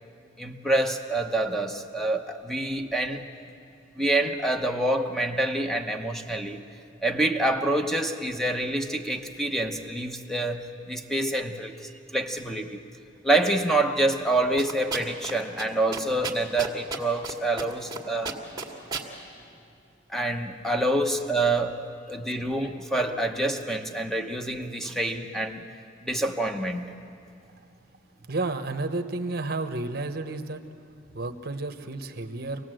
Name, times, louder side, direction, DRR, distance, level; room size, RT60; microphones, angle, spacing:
voice 1, 0.4-3.2 4.0-6.6 7.0-11.8 12.1-12.8 13.2-18.4 20.1-25.7 26.0-26.9, right 1 dB, ahead, 4 dB, 1.0 m, -27 dB
sound 1, 14.6-15.3 15.6-15.7 15.9-17.3 17.6-18.0 18.2-19.1, right 4 dB, 20° right, 2.2 m, -32 dB
voice 2, 28.3-30.6 31.1-32.7, right 2 dB, 55° right, 8 dB, 1.0 m, -31 dB
26.0 x 18.0 x 7.7 m, 2.6 s
head